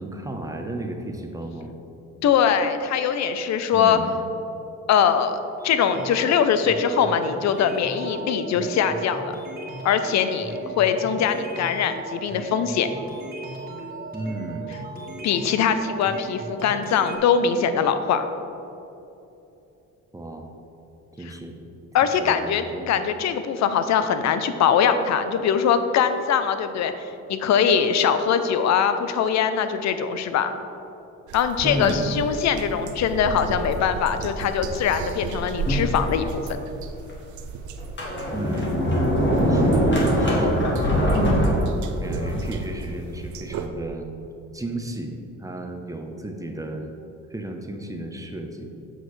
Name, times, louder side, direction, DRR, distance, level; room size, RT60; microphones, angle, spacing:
voice 1, 0.0-1.7 3.7-4.2 14.1-14.7 20.1-20.5 21.2-21.6 22.0-22.9 31.6-32.1 38.3-38.9 39.4-41.6 42.0-44.1 44.5-46.9 47.3-48.7, right 1 dB, 10° right, 3 dB, 0.7 m, -33 dB
voice 2, 2.2-4.0 4.9-5.4 5.6-9.4 9.8-12.9 15.2-18.3 21.9-26.9 27.3-30.5 31.3-36.4, left 7 dB, 65° left, 10 dB, 0.6 m, -22 dB
sound 1, 5.6-17.2, right 3 dB, 30° right, 1.6 m, -36 dB
sound 2, 31.3-43.7, right 4 dB, 75° right, 0.6 m, -34 dB
Sliding door, 35.6-36.5 37.1-37.2 37.8-42.6, equal, 40° left, 1.7 m, -22 dB
7.7 x 6.4 x 3.2 m, 2.9 s
cardioid pair, 90°, 30 cm